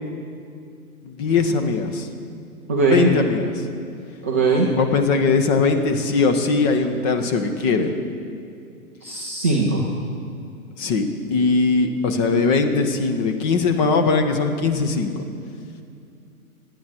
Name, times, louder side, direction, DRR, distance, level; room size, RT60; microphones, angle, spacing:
voice 1, 1.0-2.1 2.9-3.6 4.8-7.9 10.8-15.2, left 4 dB, 30° left, 6 dB, 1.3 m, -20 dB
voice 2, 2.7-3.1 4.2-4.7 9.0-9.9, right 3 dB, 10° right, -3 dB, 0.3 m, -20 dB
26.5 x 9.6 x 4.6 m, 2.4 s
figure-of-eight pair, 115°, 44 cm